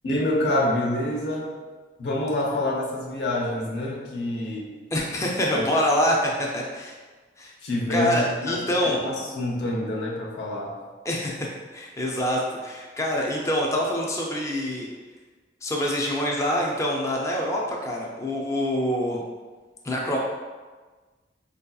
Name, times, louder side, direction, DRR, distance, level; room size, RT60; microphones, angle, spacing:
voice 1, 0.0-1.5 2.0-4.7 5.5-5.7 7.6-8.2 8.5-8.6 9.0-10.7, left 1 dB, 75° left, -2 dB, 0.7 m, -26 dB
voice 2, 4.9-7.0 7.4-7.5 7.9-9.0 11.0-11.5 11.7-14.9 15.6-19.2 19.8-20.2, equal, 15° left, -2 dB, 0.4 m, -25 dB
4.5 x 2.7 x 2.3 m, 1.4 s
head